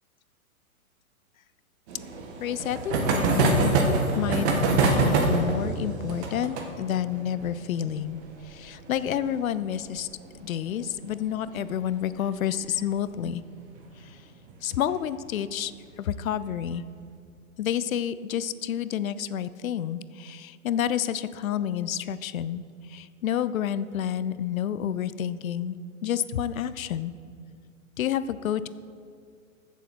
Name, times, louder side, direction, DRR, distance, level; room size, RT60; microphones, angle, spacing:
sound 1, 1.9-11.1 11.3-11.4 11.7-11.8 12.1-12.2 13.6-13.8 14.5-14.9, right 3 dB, 50° right, 1.9 m, -26 dB
voice 1, 2.4-3.8 4.1-4.5 4.7-10.1 10.4-13.4 14.0-14.2 14.6-15.7 16.0-16.8 17.6-25.8 26.0-27.1 28.0-28.7, left 10 dB, 70° left, 15 dB, 0.6 m, -29 dB
15.0 x 7.0 x 4.5 m, 2.2 s
hypercardioid pair, 120°, 43 cm